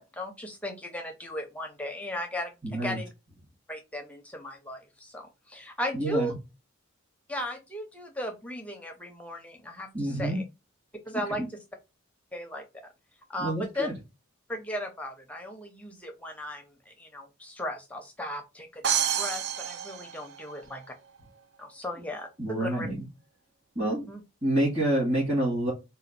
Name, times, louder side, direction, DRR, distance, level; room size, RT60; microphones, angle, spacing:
voice 1, 0.0-2.5 2.8-3.1 3.7-6.3 7.3-10.4 11.1-11.6 12.3-12.9 13.3-13.9 14.5-20.8 21.6-22.9 24.1-24.2, left 1 dB, 5° left, 4 dB, 0.5 m, -36 dB
voice 2, 2.6-3.0 5.9-6.4 9.9-10.4 11.4-11.5 13.4-13.9 22.4-23.0 23.8-24.1 24.4-25.7, right 1 dB, 35° right, -7 dB, 2.2 m, -27 dB
sound 1, 18.8-20.8, right 8 dB, 50° right, 0.3 m, -29 dB
4.2 x 2.2 x 4.1 m, 0.26 s
head